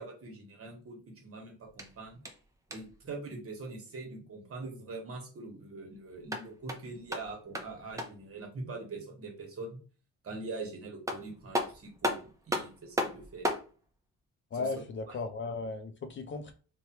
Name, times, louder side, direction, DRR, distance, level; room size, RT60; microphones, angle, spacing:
voice 1, 0.0-2.2 2.7-9.8 10.2-13.5 14.5-14.7, right 3 dB, 50° right, 1.1 m, -43 dB
sound 1, 1.7-3.1 6.1-8.3 10.6-10.7 11.1-13.7, equal, 10° right, 0.5 m, -35 dB
voice 2, 14.5-16.5, left 3 dB, 40° left, 0.5 m, -36 dB
3.1 x 2.2 x 2.8 m
cardioid pair, 90°, 30 cm